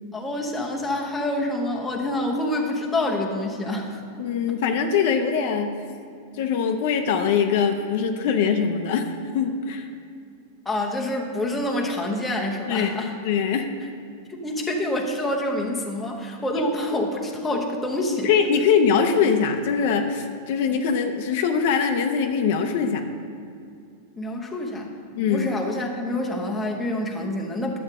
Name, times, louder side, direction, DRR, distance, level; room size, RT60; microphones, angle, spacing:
voice 1, 0.1-4.3 10.6-13.1 14.3-18.3 24.2-24.9 25.3-27.8, left 1 dB, 5° left, -1 dB, 0.9 m, -27 dB
voice 2, 4.2-5.7 6.4-9.9 12.7-13.7 16.9-17.0 18.2-23.0 25.2-25.5, left 6 dB, 50° left, 6 dB, 0.7 m, -22 dB
11.5 x 7.8 x 3.7 m, 2.4 s
supercardioid pair, 165°, 0 cm